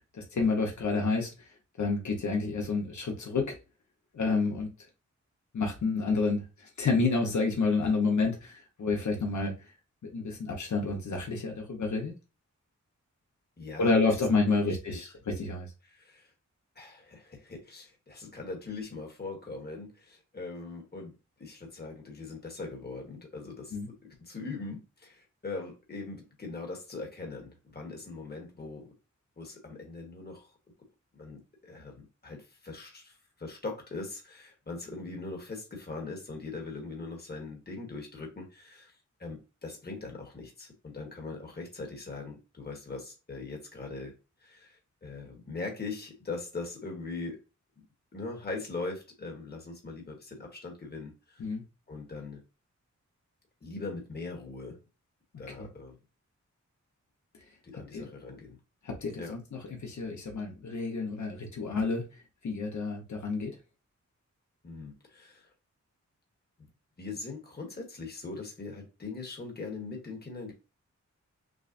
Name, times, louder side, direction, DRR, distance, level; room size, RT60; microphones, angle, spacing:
voice 1, 0.1-1.3 1.8-3.6 4.1-4.7 5.5-6.4 6.8-9.5 10.1-12.1 13.8-15.7 23.7-23.9 51.4-51.6 55.6-55.7 57.9-58.1 58.8-62.0 62.4-63.5, left 4 dB, 75° left, 0.9 m, -29 dB
voice 2, 13.6-15.1 15.8-16.3 16.7-21.1 21.4-28.9 29.4-30.5 31.1-38.9 39.2-44.1 44.4-47.4 48.1-51.4 51.9-52.4 53.6-54.8 55.4-56.0 57.6-58.6 59.2-59.4 64.6-65.5 66.6-66.7 67.0-70.5, left 3 dB, 35° left, 1.2 m, -41 dB
6.1 x 2.1 x 2.6 m
wide cardioid pair, 130°, 30 cm